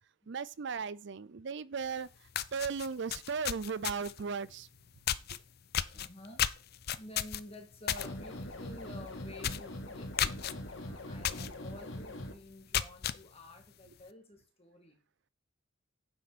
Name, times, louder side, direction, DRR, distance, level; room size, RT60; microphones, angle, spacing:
voice 1, 0.3-2.1 2.5-4.7, right 5 dB, 60° right, 0.5 m, -36 dB
sound 1, 1.9-2.0 2.3-4.2 5.1-5.4 5.7-8.1 8.4-8.7 9.0-9.1 9.4-9.7 10.2-10.5 11.2-11.5 11.9-12.0 12.5-13.2, left 10 dB, 50° left, 0.5 m, -33 dB
voice 2, 5.9-6.4 6.9-10.3 10.6-15.0, left 1 dB, 30° left, 2.4 m, -51 dB
sound 2, 8.0-12.3, left 1 dB, 65° left, 1.6 m, -42 dB
9.6 x 7.7 x 4.2 m
head